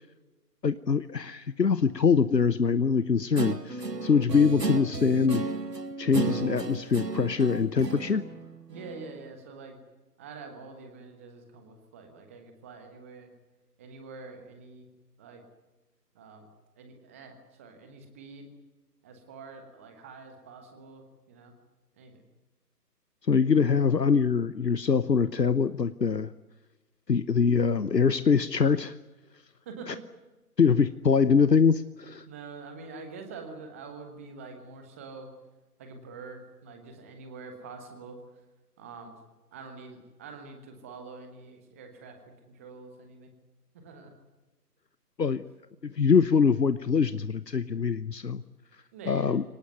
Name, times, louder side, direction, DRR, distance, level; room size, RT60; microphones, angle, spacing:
voice 1, 0.6-5.5 6.0-8.2 23.3-26.3 27.1-29.0 30.6-32.3 45.2-45.4 45.8-48.4 49.1-49.4, left 5 dB, 75° left, 14 dB, 1.1 m, -24 dB
Guitar, 3.3-9.2, right 3 dB, 75° right, 2.3 m, -33 dB
voice 2, 8.7-9.8 10.2-13.3 13.8-14.8 15.2-15.4 16.1-16.5 16.8-18.5 19.0-21.5 21.9-22.2 29.6-30.0 32.3-35.3 35.8-38.2 38.8-39.2 39.5-42.2 42.5-43.3 43.7-44.1 48.9-49.4, right 4 dB, 10° right, 5 dB, 1.2 m, -45 dB
25.0 x 19.0 x 9.2 m, 1.1 s
figure-of-eight pair, 150°, 49 cm